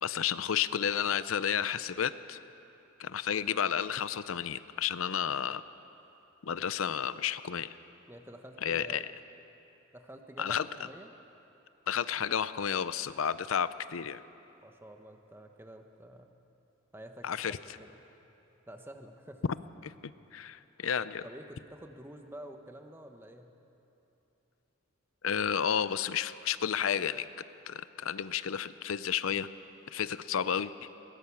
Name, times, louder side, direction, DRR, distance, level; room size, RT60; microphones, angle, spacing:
voice 1, 0.0-2.4 3.0-5.6 6.4-7.8 8.6-9.0 10.4-10.7 11.9-14.2 17.2-17.6 19.8-19.9 20.3-21.2 25.2-27.3 27.7-29.5 29.9-30.9, left 8 dB, 85° left, 15 dB, 0.6 m, -31 dB
voice 2, 8.1-9.0 9.9-11.1 14.6-16.3 16.9-18.0 18.7-19.4 21.2-23.5, right 1 dB, 10° right, 5 dB, 1.1 m, -49 dB
21.0 x 18.0 x 7.1 m, 3.0 s
head